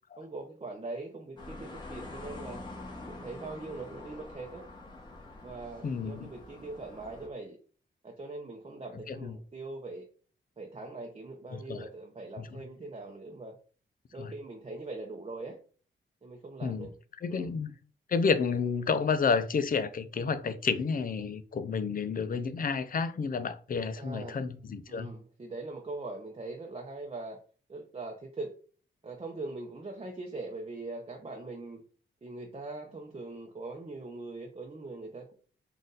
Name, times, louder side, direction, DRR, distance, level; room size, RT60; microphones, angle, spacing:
voice 1, 0.2-2.6 3.1-4.6 5.4-7.6 8.0-10.1 10.6-13.5 14.1-15.6 16.2-16.9 17.3-17.5 24.0-24.4 24.9-27.4 27.7-28.5 29.0-31.8 32.2-35.3, right 2 dB, 30° right, 0.7 m, -41 dB
sound 1, 1.4-7.3, left 2 dB, 20° left, 1.3 m, -45 dB
voice 2, 5.8-6.3 9.1-9.3 11.5-11.8 14.2-14.3 16.6-16.9 17.2-17.7 18.1-25.1, left 5 dB, 45° left, 0.5 m, -30 dB
3.9 x 2.5 x 3.8 m
cardioid pair, 80°, 20 cm